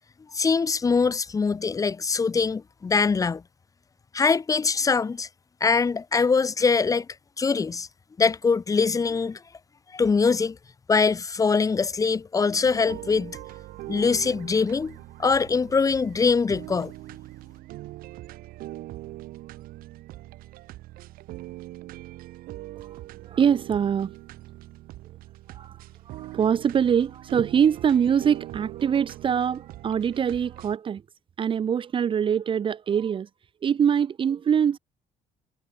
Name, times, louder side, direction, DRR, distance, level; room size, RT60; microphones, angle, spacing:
voice 1, 0.3-3.4 4.1-5.3 5.6-7.1 7.4-7.9 8.2-9.4 9.9-10.6 10.9-13.4 13.9-16.9, left 5 dB, 25° left, 4.0 m, -23 dB
sound 1, 12.6-30.8, right 17 dB, 80° right, 5.9 m, -42 dB
voice 2, 23.3-24.1 25.5-25.8 26.1-31.0 31.4-33.3 33.6-34.8, right 8 dB, 35° right, 1.6 m, -24 dB
cardioid pair, 145°, 15 cm